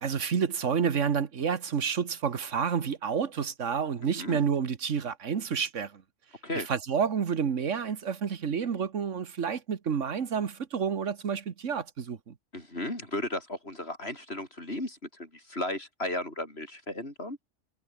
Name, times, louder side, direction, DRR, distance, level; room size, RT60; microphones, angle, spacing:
voice 1, 0.0-5.9 6.5-12.3, right 6 dB, 75° right, 1.6 m, -29 dB
voice 2, 12.5-17.4, left 1 dB, 55° left, 7.5 m, -35 dB
omnidirectional pair, 1.3 m